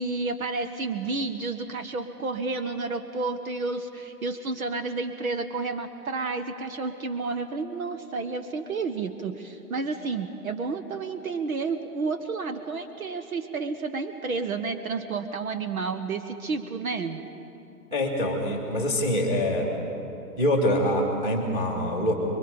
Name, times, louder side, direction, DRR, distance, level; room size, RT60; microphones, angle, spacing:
voice 1, 0.0-17.2, right 4 dB, 60° right, 8 dB, 1.2 m, -31 dB
voice 2, 17.9-19.7 20.4-22.1, left 1 dB, 10° right, 1 dB, 2.0 m, -25 dB
25.5 x 23.0 x 5.3 m, 2.9 s
hypercardioid pair, 150°, 47 cm